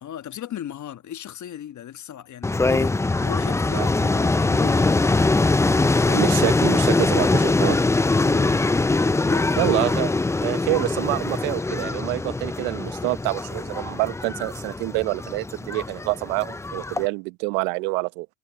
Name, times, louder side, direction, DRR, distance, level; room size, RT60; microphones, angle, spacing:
voice 1, 0.0-5.5 6.0-6.3 9.2-10.0, left 10 dB, 40° left, 1.4 m, -37 dB
sound 1, 2.4-17.1, left 3 dB, 5° left, 0.5 m, -22 dB
voice 2, 6.1-7.8 9.6-10.1 10.4-18.3, right 26 dB, 75° right, 1.2 m, -26 dB
hypercardioid pair, 75°, 43 cm